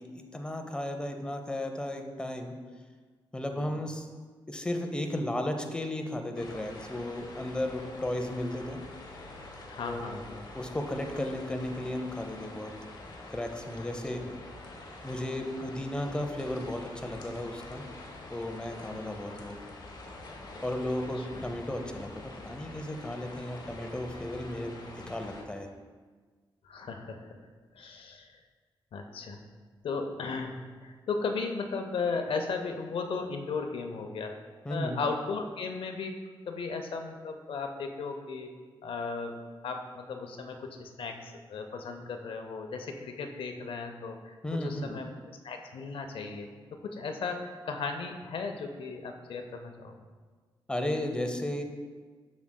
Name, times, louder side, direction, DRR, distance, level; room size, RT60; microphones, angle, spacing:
voice 1, 0.0-2.5 3.3-4.1 4.5-8.8 9.9-10.1 10.5-12.7 13.3-14.2 15.0-17.9 18.3-19.6 20.6-25.7 34.6-35.0 44.4-45.0 50.7-51.6, left 1 dB, 10° left, 4 dB, 0.6 m, -34 dB
sound 1, 6.3-25.4, left 2 dB, 50° left, 1.0 m, -46 dB
voice 2, 9.7-10.5 13.8-13.9 14.3-14.4 18.9-19.0 21.2-21.4 26.6-27.3 27.8-28.4 28.9-29.4 29.8-30.5 30.8-34.3 34.7-36.1 36.5-38.5 38.8-39.3 39.6-44.3 44.6-46.5 46.8-49.9, left 4 dB, 75° left, 5 dB, 0.5 m, -36 dB
7.2 x 6.1 x 2.2 m, 1.5 s
cardioid pair, 75°, 9 cm